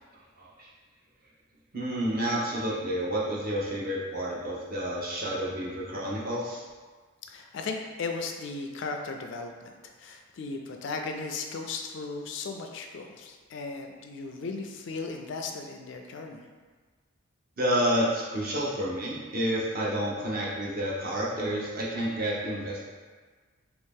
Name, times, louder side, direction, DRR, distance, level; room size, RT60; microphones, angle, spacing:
voice 1, 1.7-6.6 17.6-22.8, equal, 45° right, -5 dB, 0.7 m, -29 dB
voice 2, 7.3-9.7 10.0-16.5, left 4 dB, 55° left, 3 dB, 0.3 m, -36 dB
2.9 x 2.7 x 3.6 m, 1.4 s
head